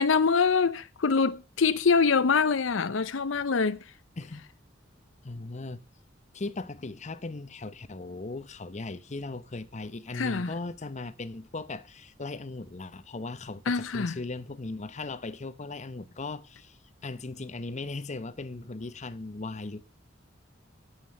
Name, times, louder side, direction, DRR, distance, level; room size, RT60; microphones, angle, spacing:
voice 1, 0.0-3.8 10.1-10.5 13.7-14.2, left 5 dB, 80° left, 0.7 m, -24 dB
voice 2, 5.2-5.8 6.3-19.8, left 3 dB, 40° left, 0.8 m, -38 dB
9.2 x 8.3 x 6.5 m
head